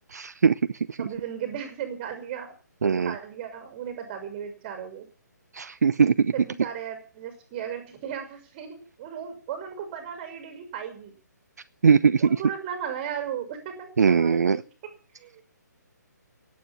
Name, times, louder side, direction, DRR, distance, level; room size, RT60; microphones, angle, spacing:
voice 1, 0.1-0.5 1.0-1.1 2.8-3.1 5.5-6.3 11.8-12.4 14.0-14.6, right 6 dB, 60° right, 14 dB, 0.7 m, -20 dB
voice 2, 1.0-2.5 2.8-5.1 6.3-11.1 12.2-14.9 15.2-15.4, right 8 dB, 30° right, 7 dB, 6.0 m, -36 dB
17.0 x 9.4 x 8.9 m, 0.38 s
figure-of-eight pair, 140°, 10 cm